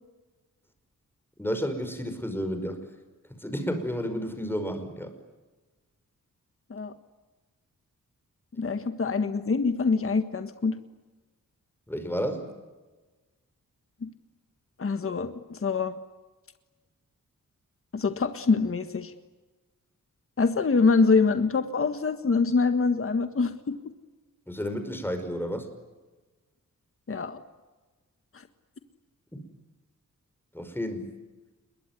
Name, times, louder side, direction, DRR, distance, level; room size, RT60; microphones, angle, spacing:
voice 1, 1.4-2.8 3.4-5.1 11.9-12.5 24.5-25.7 29.3-29.5 30.5-31.1, equal, 5° left, 7 dB, 5.3 m, -31 dB
voice 2, 8.6-10.8 14.0-14.1 14.8-15.9 17.9-19.1 20.4-23.8 27.1-27.4, left 4 dB, 40° left, 9 dB, 1.6 m, -25 dB
27.5 x 22.5 x 9.5 m, 1.2 s
wide cardioid pair, 130°, 32 cm